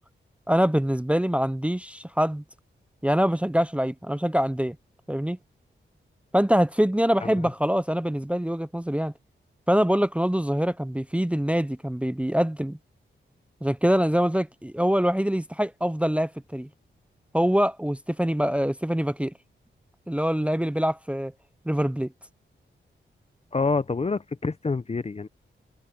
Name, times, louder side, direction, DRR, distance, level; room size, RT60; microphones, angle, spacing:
voice 1, 0.5-2.4 3.0-4.8 5.1-5.4 6.3-9.1 9.7-12.8 13.6-16.7 17.3-19.3 20.1-21.3 21.7-22.1, equal, 5° right, 0.7 m, -24 dB
voice 2, 23.5-25.3, left 4 dB, 30° left, 0.7 m, -27 dB
cardioid pair, 70°, 20 cm